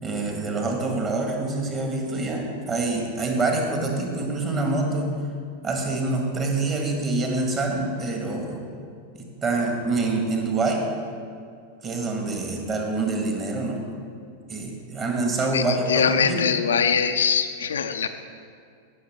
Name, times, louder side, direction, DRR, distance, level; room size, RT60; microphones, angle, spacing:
voice 1, 0.0-5.1 5.6-8.6 9.1-10.9 11.8-13.8 14.5-16.4, right 3 dB, 30° right, 1 dB, 1.9 m, -26 dB
voice 2, 15.5-18.1, left 7 dB, 65° left, 8 dB, 0.5 m, -22 dB
17.0 x 6.4 x 3.7 m, 2.3 s
figure-of-eight pair, 90°, 0 cm